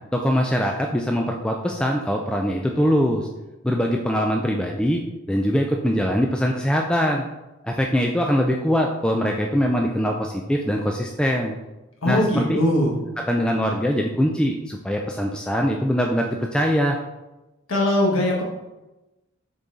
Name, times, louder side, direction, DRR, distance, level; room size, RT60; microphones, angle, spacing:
voice 1, 0.1-3.3 3.6-5.0 5.3-7.3 7.6-11.5 12.1-12.6 13.3-17.0, equal, 5° left, 1 dB, 0.3 m, -22 dB
voice 2, 12.0-12.9 17.7-18.4, left 1 dB, 80° left, -2 dB, 1.3 m, -20 dB
6.6 x 4.1 x 3.6 m, 1.0 s
head